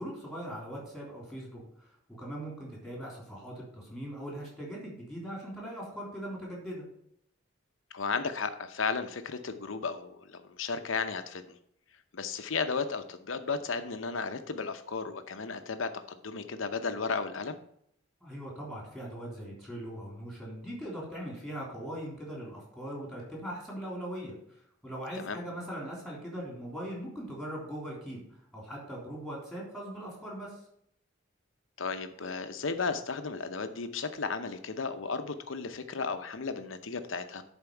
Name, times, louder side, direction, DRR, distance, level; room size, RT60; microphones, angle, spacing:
voice 1, 0.0-1.9 2.2-6.8 18.2-28.2 28.5-30.6, equal, ahead, -4 dB, 3.2 m, -40 dB
voice 2, 7.9-11.6 12.1-17.6 25.2-25.4 31.8-37.4, left 4 dB, 80° left, 9 dB, 0.8 m, -34 dB
10.5 x 4.4 x 4.5 m, 0.71 s
head